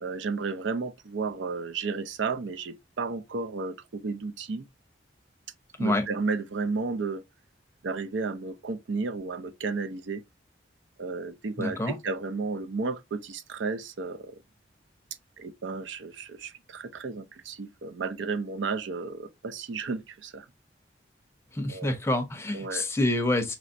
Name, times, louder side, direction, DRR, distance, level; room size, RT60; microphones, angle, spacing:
voice 1, 0.0-4.6 5.8-7.2 7.8-10.2 11.0-14.4 15.4-20.5 21.7-21.9 22.5-22.8, right 4 dB, 80° right, 0.5 m, -33 dB
voice 2, 11.6-12.0 21.5-23.6, left 1 dB, 15° left, 0.6 m, -27 dB
5.3 x 3.0 x 2.5 m
head